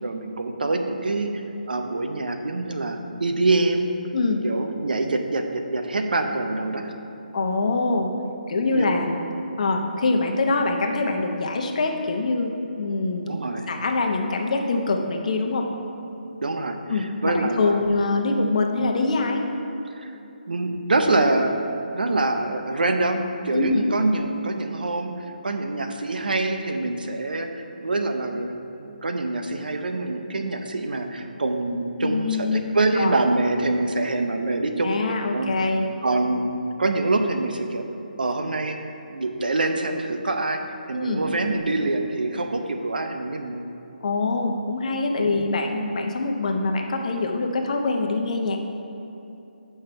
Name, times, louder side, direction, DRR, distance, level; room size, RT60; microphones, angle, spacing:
voice 1, 0.0-3.9 4.4-6.9 8.7-9.0 13.2-13.7 16.4-17.8 20.0-20.1 20.5-21.6 21.9-25.1 25.4-28.5 28.8-35.5 36.0-37.9 38.2-38.8 39.1-43.7 45.2-45.4, right 2 dB, 70° right, 5 dB, 0.7 m, -25 dB
voice 2, 7.3-8.1 8.5-9.2 9.6-12.5 12.8-13.3 13.7-15.7 16.9-19.5 23.5-23.8 32.0-32.6 33.0-33.2 34.8-35.9 40.9-41.2 44.0-48.6, left 3 dB, 50° left, 3 dB, 0.8 m, -24 dB
8.6 x 5.6 x 4.5 m, 2.8 s
figure-of-eight pair, 150°, 5 cm